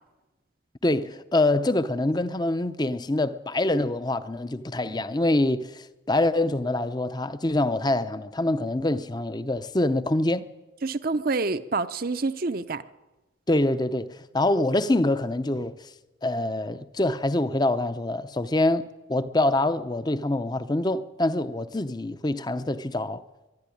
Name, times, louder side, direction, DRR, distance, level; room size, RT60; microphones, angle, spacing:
voice 1, 0.8-10.4 13.5-15.9 16.2-23.2, left 2 dB, 20° left, 0.7 m, -25 dB
voice 2, 10.8-12.8, right 3 dB, 50° right, 0.7 m, -27 dB
23.0 x 11.5 x 10.0 m
head